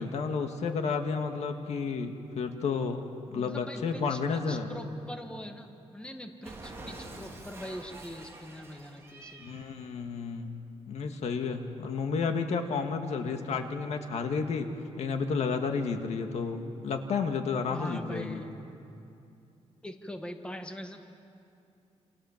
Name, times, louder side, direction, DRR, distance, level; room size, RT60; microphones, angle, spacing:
voice 1, 0.0-4.7 9.4-14.7 15.0-18.4, left 5 dB, 80° left, 5 dB, 2.0 m, -31 dB
voice 2, 3.3-9.6 17.7-18.5 19.8-21.1, equal, 10° left, 5 dB, 1.7 m, -42 dB
Cat, 6.4-9.7, right 2 dB, 25° right, 3.9 m, -46 dB
28.5 x 28.0 x 7.4 m, 2.7 s
wide cardioid pair, 145°, 11 cm